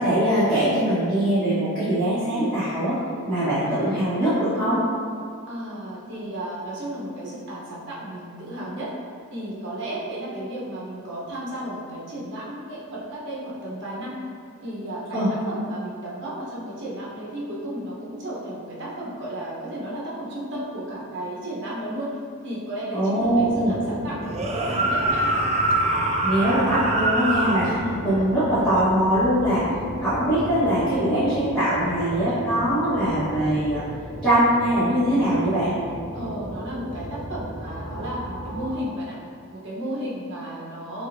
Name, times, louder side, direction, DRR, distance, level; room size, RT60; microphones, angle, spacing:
voice 1, 0.0-3.0 3.2-4.8 15.1-15.3 22.9-23.7 26.2-27.7 28.0-29.6 30.0-33.8 34.2-35.7, right 1 dB, ahead, -18 dB, 1.4 m, -22 dB
voice 2, 5.5-8.9 9.3-14.2 14.6-25.4 27.6-28.0 29.6-29.9 36.1-39.1 39.5-41.1, right 1 dB, 55° right, -6 dB, 1.0 m, -33 dB
sound 1, 23.2-38.8, equal, 20° left, 1.0 m, -36 dB
sound 2, 24.3-27.7, right 2 dB, 30° right, 0.3 m, -24 dB
6.1 x 2.5 x 2.7 m, 2.3 s
head